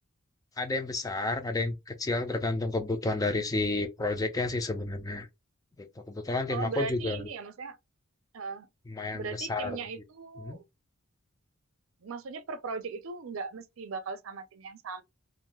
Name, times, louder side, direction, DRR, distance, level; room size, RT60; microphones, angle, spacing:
voice 1, 0.6-5.3 5.8-7.3 8.9-9.8 10.4-10.6, left 2 dB, 15° left, 0.4 m, -31 dB
voice 2, 6.5-7.8 8.3-8.7 9.1-10.6 12.0-15.0, right 4 dB, 80° right, 0.5 m, -38 dB
2.5 x 2.3 x 3.0 m
head